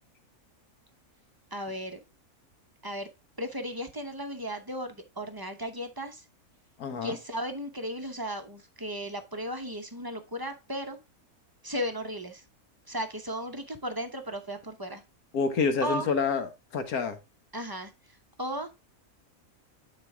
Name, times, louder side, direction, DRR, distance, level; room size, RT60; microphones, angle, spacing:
voice 1, 1.5-2.0 2.8-3.1 3.4-6.2 7.0-11.0 11.6-12.4 12.9-15.0 15.8-16.1 17.5-17.9 18.4-18.7, equal, 20° right, 0.6 m, -35 dB
voice 2, 6.8-7.2 15.3-17.2, left 5 dB, 80° left, 1.6 m, -28 dB
8.8 x 4.3 x 3.4 m
omnidirectional pair, 1.5 m